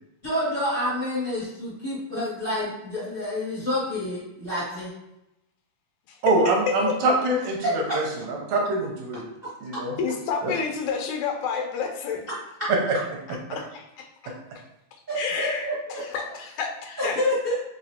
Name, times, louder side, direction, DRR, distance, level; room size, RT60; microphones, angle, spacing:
voice 1, 0.2-4.9 7.6-7.7 15.1-16.0 17.0-17.5, left 1 dB, 30° right, -9 dB, 0.9 m, -28 dB
voice 2, 6.2-9.2 9.6-10.0 10.4-10.5 12.9-13.0, right 2 dB, 75° right, 0 dB, 1.9 m, -24 dB
voice 3, 10.0-12.2 13.5-14.3 15.2-17.2, left 5 dB, 85° left, 3 dB, 2.1 m, -30 dB
4.7 x 3.1 x 2.8 m, 0.87 s
omnidirectional pair, 3.3 m